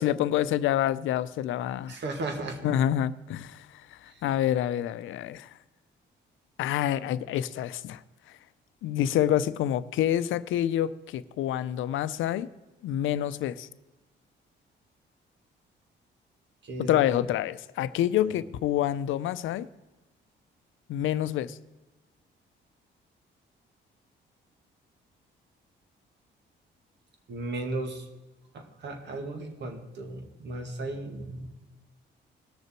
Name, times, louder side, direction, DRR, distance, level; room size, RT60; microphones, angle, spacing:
voice 1, 0.0-1.9 2.6-5.5 6.6-8.0 8.8-12.5 12.8-13.7 16.8-19.7 20.9-21.6, left 11 dB, 80° left, 15 dB, 0.6 m, -27 dB
voice 2, 1.9-2.6 16.6-17.2 18.2-18.3 27.3-28.0 28.5-31.5, right 2 dB, 60° right, 5 dB, 2.1 m, -35 dB
19.5 x 6.7 x 4.5 m, 1.1 s
cardioid pair, 90°, 20 cm